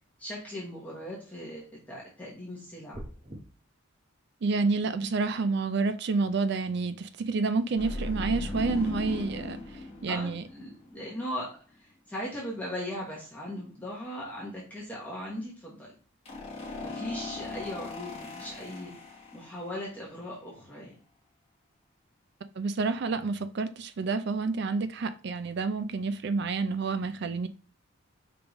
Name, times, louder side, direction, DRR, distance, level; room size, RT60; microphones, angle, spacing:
voice 1, 0.2-3.0 10.1-15.9 16.8-18.9 19.3-21.0, equal, 5° left, 1.2 m, -39 dB
sound 1, 2.9-3.4, right 1 dB, 25° right, 0.8 m, -41 dB
voice 2, 4.4-9.6 10.0-10.4 22.6-27.5, right 4 dB, 55° right, 0.4 m, -29 dB
sound 2, 7.8-11.2 16.3-19.8, left 2 dB, 30° left, 1.2 m, -38 dB
5.0 x 3.4 x 3.0 m
head